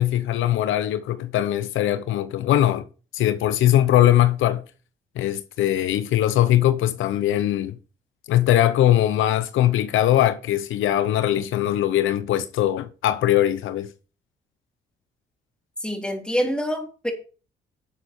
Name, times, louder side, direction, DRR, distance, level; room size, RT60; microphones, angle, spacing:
voice 1, 0.0-2.8 3.1-4.6 5.2-7.8 8.3-13.9, left 12 dB, 80° left, 0.8 m, -21 dB
voice 2, 15.8-17.1, equal, 5° left, 3.5 m, -26 dB
11.5 x 7.2 x 4.4 m
cardioid pair, 90°, 20 cm